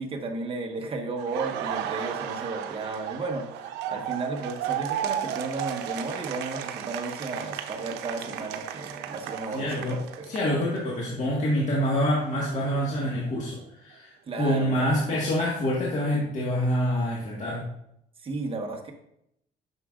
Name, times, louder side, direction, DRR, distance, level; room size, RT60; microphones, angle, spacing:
voice 1, 0.0-10.4 14.3-14.9 18.2-18.9, right 3 dB, 30° right, 2 dB, 1.3 m, -34 dB
Laughter, 1.2-11.0 11.3-13.3, right 10 dB, 85° right, 0.6 m, -35 dB
voice 2, 9.5-9.9 10.3-17.7, equal, 45° left, -4 dB, 1.7 m, -26 dB
9.4 x 6.3 x 2.5 m, 0.77 s
cardioid pair, 110°, 17 cm